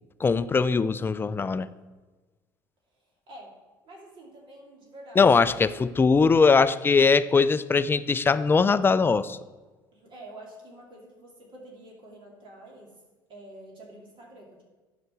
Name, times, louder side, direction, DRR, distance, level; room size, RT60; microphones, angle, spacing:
voice 1, 0.2-1.7 5.2-9.4, left 4 dB, 20° left, 14 dB, 0.5 m, -21 dB
voice 2, 3.8-5.5 6.5-6.7 9.9-12.9 13.3-14.6, right 1 dB, 50° right, -2 dB, 2.7 m, -47 dB
9.5 x 5.0 x 6.8 m, 1.3 s
hypercardioid pair, 70°, 10 cm